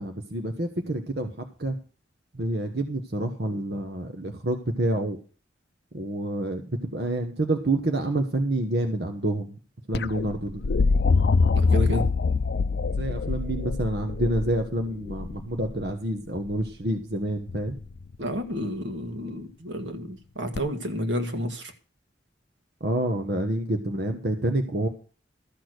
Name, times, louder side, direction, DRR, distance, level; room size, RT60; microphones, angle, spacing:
voice 1, 0.0-1.8 2.3-5.2 5.9-9.6 9.9-10.6 13.0-17.8 22.8-24.9, right 1 dB, 60° right, 1.2 m, -28 dB
sound 1, 9.9-15.9 17.5-18.0 20.6-20.7, left 4 dB, 60° left, 0.5 m, -24 dB
voice 2, 11.5-12.1 18.2-21.7, equal, 85° right, 1.9 m, -30 dB
13.5 x 6.2 x 6.5 m
head